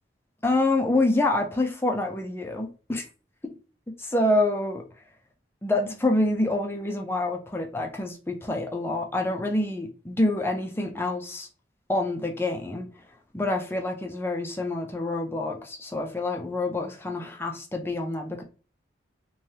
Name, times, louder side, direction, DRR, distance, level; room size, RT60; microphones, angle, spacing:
voice 1, 0.4-3.0 4.0-4.8 5.6-11.5 11.9-12.9 13.3-18.4, left 2 dB, 10° left, 0.4 m, -27 dB
3.2 x 2.3 x 2.7 m
head